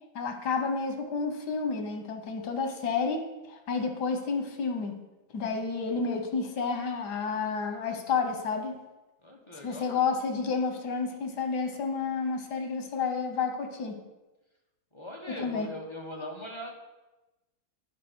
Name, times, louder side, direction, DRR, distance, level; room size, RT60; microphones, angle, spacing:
voice 1, 0.2-4.9 5.3-8.7 9.6-14.0 15.3-15.7, left 5 dB, 85° left, 5 dB, 1.7 m, -30 dB
voice 2, 9.2-9.9 14.9-16.7, left 1 dB, 20° left, 0 dB, 1.0 m, -41 dB
10.0 x 4.8 x 6.2 m, 1.1 s
omnidirectional pair, 1.7 m